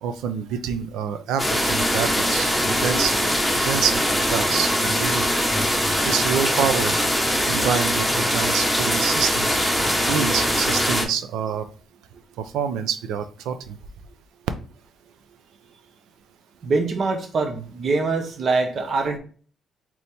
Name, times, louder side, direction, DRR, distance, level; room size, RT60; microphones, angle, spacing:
voice 1, 0.0-3.2 3.6-5.3 6.0-7.0 7.4-9.6 10.1-11.7 12.4-13.8, right 7 dB, 85° right, 10 dB, 0.5 m, -27 dB
sound 1, 1.4-11.0, equal, 5° right, 1.2 m, -22 dB
voice 2, 16.6-19.2, right 3 dB, 55° right, 5 dB, 0.8 m, -23 dB
4.1 x 3.0 x 3.5 m, 0.40 s
cardioid pair, 90°, 0 cm